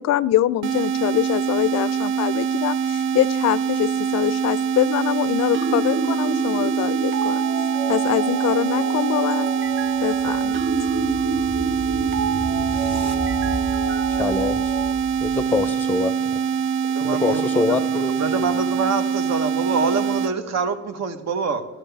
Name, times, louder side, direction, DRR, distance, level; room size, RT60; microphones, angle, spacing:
voice 1, 0.0-7.4 7.9-9.5 10.0-10.6, left 14 dB, 60° left, 20 dB, 0.4 m, -24 dB
sound 1, 0.6-20.3, right 6 dB, 85° right, 0.5 m, -24 dB
sound 2, 5.5-14.9, right 4 dB, 40° right, 0.8 m, -29 dB
sound 3, 9.5-15.8, right 1 dB, 20° right, 1.9 m, -35 dB
voice 2, 14.1-14.9 15.2-16.1 17.0-18.5, left 3 dB, 5° left, 12 dB, 0.6 m, -25 dB
voice 3, 16.9-17.8 18.2-21.6, right 4 dB, 60° right, 9 dB, 1.1 m, -25 dB
13.5 x 11.5 x 3.4 m, 1.2 s
cardioid pair, 90°, 30 cm